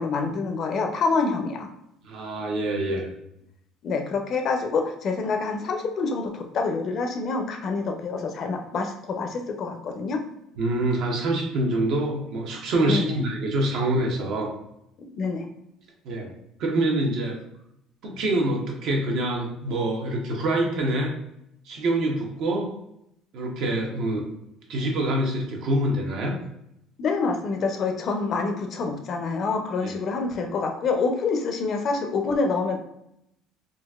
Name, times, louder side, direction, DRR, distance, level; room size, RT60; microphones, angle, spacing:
voice 1, 0.0-1.7 3.8-10.2 12.8-13.2 15.0-15.5 27.0-32.8, left 4 dB, 50° left, 4 dB, 0.5 m, -27 dB
voice 2, 2.0-3.1 10.6-14.5 16.0-16.3 16.6-17.4 18.0-21.1 21.7-22.7 23.3-24.3 24.7-26.4 29.8-29.9, right 1 dB, 65° right, 0 dB, 0.7 m, -25 dB
3.8 x 2.4 x 2.3 m, 0.80 s
cardioid pair, 115°, 0 cm